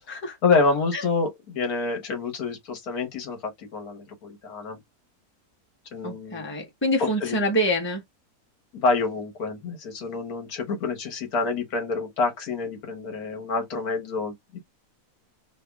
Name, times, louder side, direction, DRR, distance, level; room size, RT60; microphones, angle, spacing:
voice 1, 0.4-4.8 5.9-6.5 7.0-7.4 8.7-14.3, left 4 dB, 75° left, 1.6 m, -27 dB
voice 2, 6.0-8.0, equal, 10° left, 0.9 m, -26 dB
3.5 x 2.2 x 3.4 m
omnidirectional pair, 1.6 m